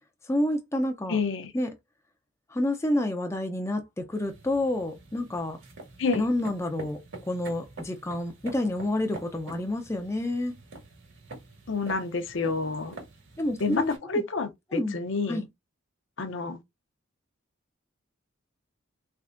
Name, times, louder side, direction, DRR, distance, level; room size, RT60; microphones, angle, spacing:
voice 1, 0.3-1.2 1.5-1.7 2.5-5.6 6.1-7.0 7.3-10.5 13.4-13.9 14.7-15.0 15.3-15.5, left 1 dB, 15° left, 0.4 m, -29 dB
voice 2, 1.1-1.5 6.0-6.3 11.7-13.0 13.6-15.4 16.2-16.6, left 4 dB, 60° left, 0.6 m, -29 dB
sound 1, 4.1-14.0, right 2 dB, 65° right, 1.8 m, -46 dB
3.6 x 3.4 x 2.4 m
head